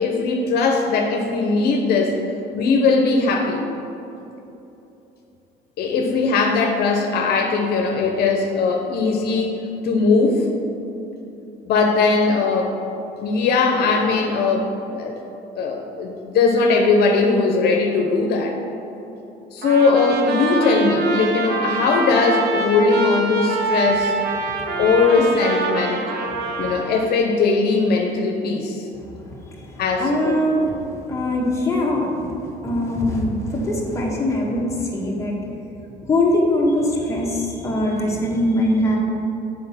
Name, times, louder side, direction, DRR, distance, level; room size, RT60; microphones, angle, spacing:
voice 1, 0.0-2.2 2.5-3.7 5.8-10.5 11.7-12.8 13.2-15.2 15.6-18.6 19.5-24.1 24.8-26.0 26.6-28.8 29.8-30.3, left 4 dB, 70° left, 2 dB, 0.8 m, -19 dB
Trumpet, 19.6-27.1, right 3 dB, 70° right, 0.9 m, -25 dB
voice 2, 26.3-26.7 28.9-35.4 36.1-39.0, left 1 dB, 15° left, -3 dB, 1.4 m, -22 dB
7.7 x 4.1 x 5.6 m, 2.9 s
cardioid pair, 110°, 17 cm